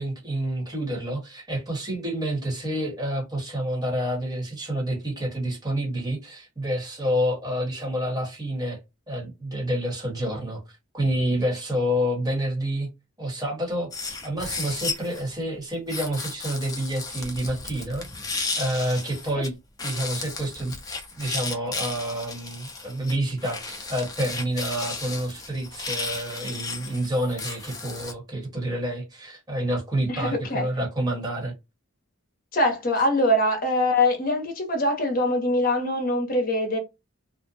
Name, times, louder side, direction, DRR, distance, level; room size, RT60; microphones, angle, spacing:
voice 1, 0.0-8.8 9.1-10.6 10.9-12.9 13.2-18.0 18.3-19.5 19.8-20.7 21.1-31.5, equal, 20° right, 1.2 m, -28 dB
sound 1, 13.9-15.3 15.9-19.5 19.8-28.1, left 3 dB, 15° left, 0.4 m, -34 dB
voice 2, 30.1-30.7 32.5-36.8, left 1 dB, 40° left, 0.8 m, -23 dB
2.5 x 2.1 x 2.5 m
head